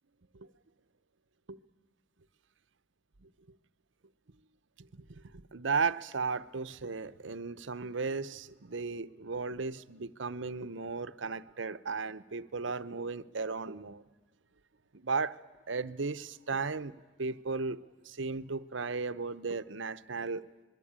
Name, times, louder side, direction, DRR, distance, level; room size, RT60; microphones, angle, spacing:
voice 1, 4.8-14.0 14.9-15.4 15.7-20.5, right 4 dB, 70° right, 0.8 m, -35 dB
26.0 x 22.5 x 8.9 m
head